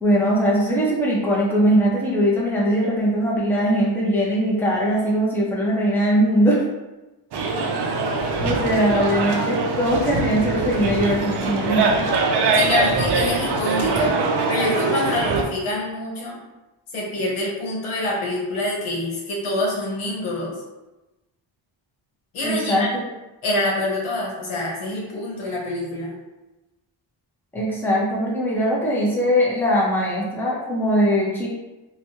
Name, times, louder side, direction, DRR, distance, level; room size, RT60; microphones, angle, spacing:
voice 1, 0.0-6.6 8.4-12.0 22.4-22.8 27.5-31.5, equal, 5° left, -5 dB, 0.6 m, -21 dB
sound 1, 7.3-15.4, right 3 dB, 60° right, 0.5 m, -22 dB
voice 2, 12.5-14.1 14.5-16.4 16.9-20.6 22.3-22.9 23.4-26.1, left 1 dB, 80° left, -3 dB, 1.0 m, -26 dB
3.0 x 2.3 x 2.8 m, 1.1 s
wide cardioid pair, 115°, 48 cm